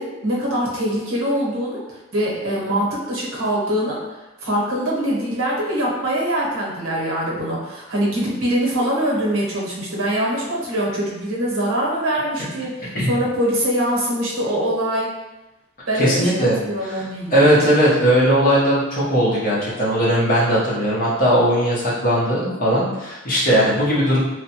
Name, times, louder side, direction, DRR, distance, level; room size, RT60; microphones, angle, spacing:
voice 1, 0.0-1.8 2.1-4.0 4.4-15.1 15.9-17.6, equal, 75° right, -4 dB, 0.8 m, -23 dB
voice 2, 15.9-17.0 17.3-24.2, equal, 40° left, -7 dB, 0.9 m, -18 dB
3.1 x 2.1 x 2.8 m, 1.0 s
head